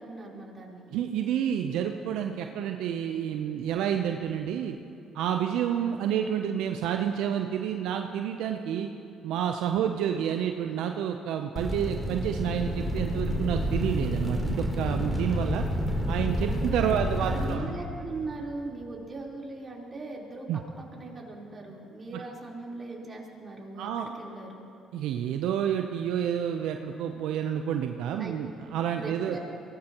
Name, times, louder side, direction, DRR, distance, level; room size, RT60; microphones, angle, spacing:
voice 1, 0.0-0.9 16.5-20.6 20.9-24.7 28.2-28.3 28.9-29.4, right 3 dB, 35° right, -3 dB, 3.8 m, -39 dB
voice 2, 0.9-4.8 5.1-8.9 9.2-15.6 16.1-17.7 20.5-20.6 23.8-24.1 24.9-29.4, right 9 dB, 75° right, 5 dB, 0.6 m, -29 dB
sound 1, 11.6-17.6, equal, 5° left, 3.3 m, -29 dB
23.0 x 18.0 x 3.0 m, 2.9 s
supercardioid pair, 60°, 0 cm